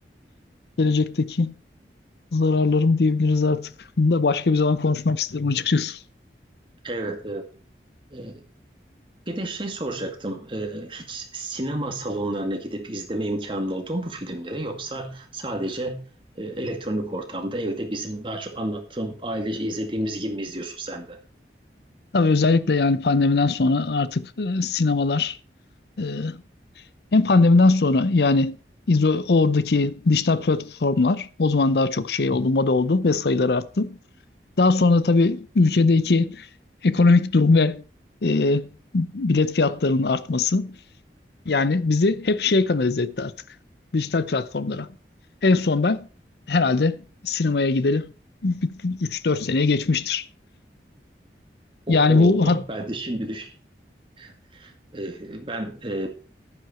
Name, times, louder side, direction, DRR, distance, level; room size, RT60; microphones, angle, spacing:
voice 1, 0.8-1.5 2.3-6.0 22.1-25.4 26.0-26.4 27.1-28.6 28.9-34.0 34.6-36.5 36.8-37.8 38.2-38.7 38.9-40.7 41.5-43.3 43.9-44.9 45.4-46.1 46.5-47.0 47.2-48.1 48.4-50.2 51.9-52.6, left 3 dB, 70° left, 0.6 m, -20 dB
voice 2, 6.8-7.5 8.1-8.4 9.3-16.1 16.3-21.2 51.9-53.5 54.2-56.1, right 1 dB, 30° right, 2.1 m, -31 dB
11.0 x 9.7 x 4.4 m
head